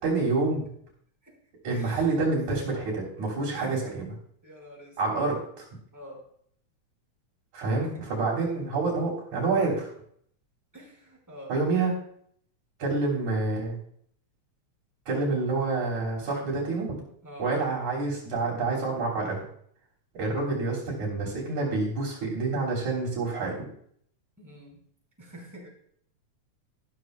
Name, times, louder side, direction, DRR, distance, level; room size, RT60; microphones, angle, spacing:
voice 1, 0.0-0.7 1.6-4.1 5.0-5.7 7.5-9.9 11.5-11.9 12.8-13.8 15.1-17.0 17.4-19.4 20.1-23.7, right 3 dB, 70° right, -6 dB, 4.4 m, -28 dB
voice 2, 1.7-2.0 2.6-2.8 3.5-4.0 4.4-5.0 5.9-6.2 7.8-7.9 10.7-11.6 17.2-17.5 24.4-24.8 25.2-25.7, equal, 5° right, -3 dB, 4.6 m, -45 dB
14.0 x 13.0 x 2.3 m, 0.64 s
omnidirectional pair, 3.5 m